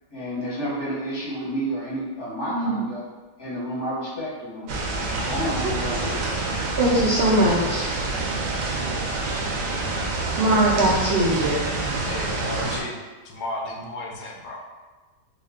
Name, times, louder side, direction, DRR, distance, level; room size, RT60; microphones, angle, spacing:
voice 1, 0.1-3.0 3.4-4.7 5.2-6.3, equal, 20° left, -8 dB, 0.9 m, -30 dB
sound 1, 4.7-12.8, right 3 dB, 90° right, 1.2 m, -27 dB
voice 2, 6.8-7.8 10.4-11.6, right 1 dB, 75° right, -5 dB, 0.5 m, -20 dB
voice 3, 12.0-13.0 13.2-14.6, left 2 dB, 85° left, -1 dB, 1.2 m, -34 dB
4.8 x 2.4 x 2.4 m, 1.2 s
omnidirectional pair, 1.7 m